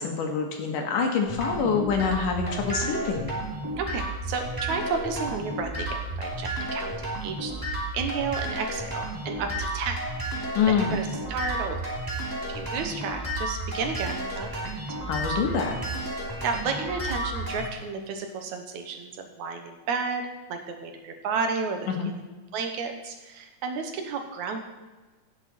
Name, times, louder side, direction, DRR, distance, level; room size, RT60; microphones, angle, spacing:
voice 1, 0.0-3.3 10.5-11.0 15.1-15.8 21.9-22.1, left 6 dB, 90° left, 3 dB, 3.2 m, -26 dB
sound 1, 1.2-17.7, right 1 dB, 5° right, 2.4 m, -32 dB
voice 2, 3.8-10.0 10.7-12.0 12.5-15.4 16.4-22.2 22.5-24.6, right 5 dB, 70° right, 5 dB, 2.4 m, -32 dB
16.5 x 8.2 x 4.3 m, 1.3 s
omnidirectional pair, 3.6 m